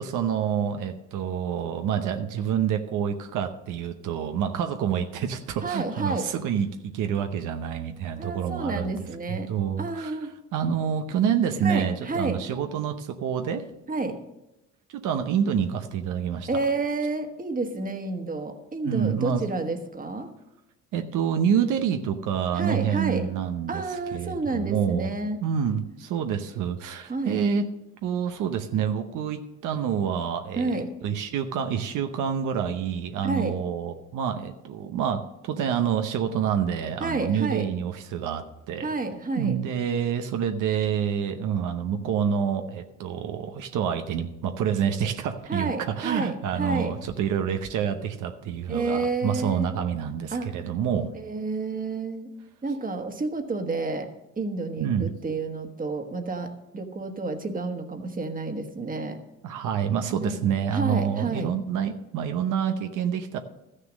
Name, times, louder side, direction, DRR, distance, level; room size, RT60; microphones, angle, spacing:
voice 1, 0.0-9.0 9.5-10.1 10.5-13.7 15.0-16.5 18.8-19.4 20.9-25.1 25.4-27.6 28.0-30.7 31.0-38.9 39.4-51.1 54.8-55.1 59.4-63.4, right 8 dB, 85° right, 7 dB, 0.8 m, -27 dB
voice 2, 5.6-6.3 8.2-9.5 9.8-10.3 11.6-12.5 13.9-14.2 16.5-20.3 22.5-23.3 23.7-25.4 27.1-27.4 30.6-30.9 33.2-33.6 37.0-37.7 38.8-39.6 45.5-46.9 48.7-49.8 50.3-50.6 51.1-52.3 52.6-54.1 54.4-59.2 60.2-60.4 60.7-61.5, right 3 dB, 30° right, 6 dB, 1.4 m, -30 dB
13.5 x 6.6 x 6.3 m, 0.92 s
cardioid pair, 90°, 30 cm